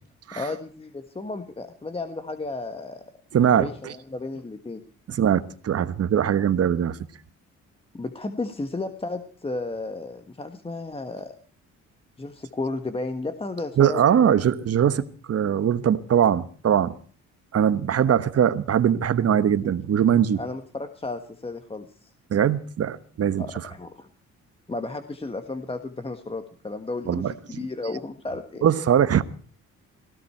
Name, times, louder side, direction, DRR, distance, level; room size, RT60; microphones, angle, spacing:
voice 1, 0.3-3.0 3.4-4.8 7.9-11.3 12.2-14.0 18.0-18.2 20.3-22.1 23.4-24.1 24.7-28.6, left 3 dB, 20° left, 1.4 m, -33 dB
voice 2, 3.3-3.9 5.1-7.0 13.8-16.9 17.5-20.4 22.3-23.4 27.1-27.3 28.6-29.2, right 9 dB, 50° right, 1.2 m, -21 dB
18.0 x 16.5 x 4.5 m
cardioid pair, 90°, 30 cm